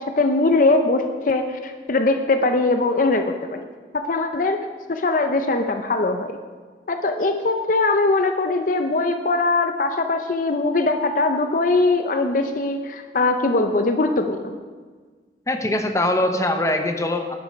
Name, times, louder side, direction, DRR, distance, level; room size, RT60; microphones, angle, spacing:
voice 1, 0.0-3.6 3.9-6.4 6.9-14.6, left 3 dB, 50° left, 6 dB, 0.6 m, -21 dB
voice 2, 15.5-17.4, left 1 dB, 15° left, 5 dB, 0.8 m, -22 dB
10.5 x 9.9 x 5.1 m, 1.5 s
head